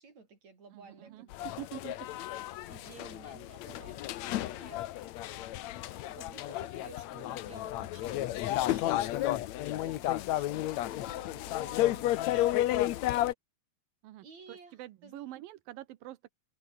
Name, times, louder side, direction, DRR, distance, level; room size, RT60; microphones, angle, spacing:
voice 1, 0.0-1.5 2.3-4.0 4.4-4.9 6.1-12.9 14.2-15.2, right 4 dB, 55° right, 6.0 m, -54 dB
voice 2, 0.7-2.0 14.0-16.3, right 15 dB, 90° right, 2.8 m, -46 dB
sound 1, 1.3-13.3, left 14 dB, 70° left, 1.9 m, -32 dB
omnidirectional pair, 3.9 m